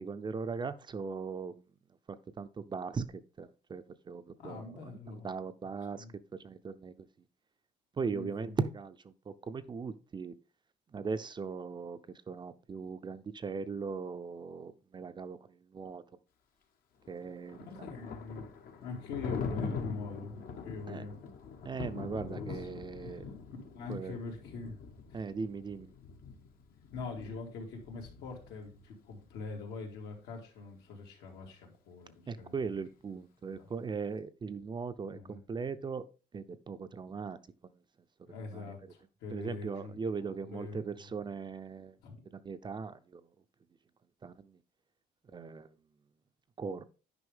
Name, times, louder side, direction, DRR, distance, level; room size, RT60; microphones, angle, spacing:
voice 1, 0.0-1.5 2.4-3.1 3.4-6.0 6.4-6.9 8.0-10.3 10.9-12.0 12.3-16.0 17.1-17.6 20.9-21.1 21.6-23.3 23.9-24.1 25.1-25.9 32.3-36.0 36.3-37.4 38.5-38.7 39.3-42.0 42.3-43.2 44.2-44.6 45.3-45.7 46.6-46.8, right 5 dB, 25° right, 0.5 m, -39 dB
voice 2, 4.4-5.3 5.9-6.1 8.1-8.5 17.6-18.5 18.8-21.2 21.9-22.7 22.9-23.2 23.7-24.8 25.1-25.2 26.9-32.8 33.4-33.7 35.1-35.4 38.3-40.0 40.4-41.2 42.0-42.2, left 3 dB, 80° left, 2.6 m, -44 dB
Thunder, 17.0-28.8, left 5 dB, 60° left, 1.3 m, -43 dB
9.7 x 5.3 x 3.6 m
cardioid pair, 110°, 17 cm